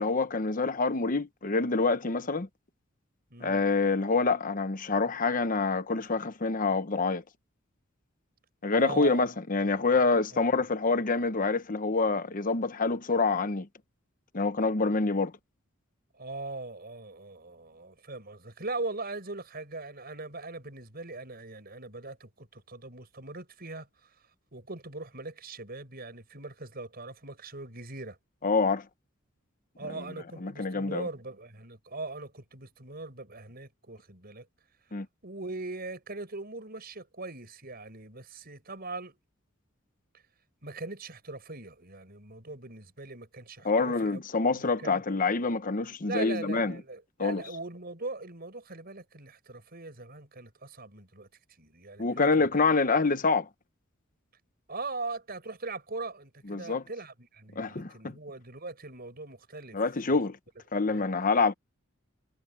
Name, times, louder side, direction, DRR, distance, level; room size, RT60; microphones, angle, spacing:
voice 1, 0.0-2.5 3.4-7.2 8.6-13.7 14.3-15.3 28.4-28.8 29.9-30.0 30.4-31.1 34.9-35.1 43.6-46.8 47.2-47.4 52.0-53.5 56.5-56.8 57.6-58.1 59.7-60.4 60.7-61.5, left 3 dB, 40° left, 1.0 m, -26 dB
voice 2, 3.3-3.6 8.7-9.3 9.6-10.1 10.5-10.7 16.1-23.9 24.5-28.2 29.8-34.5 35.2-39.2 40.6-44.2 44.5-45.0 46.0-51.3 51.6-52.3 54.7-59.8 60.1-60.2 60.9-61.0, right 3 dB, 45° right, 6.3 m, -40 dB
head